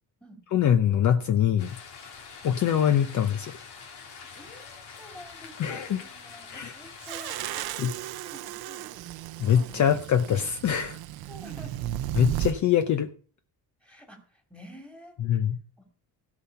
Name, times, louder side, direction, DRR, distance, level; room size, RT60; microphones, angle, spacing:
voice 1, 0.5-1.8 2.4-3.5 5.6-6.0 6.5-6.7 7.8-7.9 9.4-11.0 12.2-13.1 15.2-15.6, left 9 dB, 50° left, 8 dB, 0.8 m, -23 dB
sound 1, 1.6-7.6, left 5 dB, 80° left, 2.9 m, -45 dB
voice 2, 4.3-8.9 11.3-11.9 13.8-15.2 15.8-15.9, equal, 5° left, 4 dB, 2.5 m, -49 dB
sound 2, 7.0-12.6, right 13 dB, 70° right, 0.7 m, -35 dB
16.5 x 5.9 x 5.7 m, 0.43 s
cardioid pair, 170°, 39 cm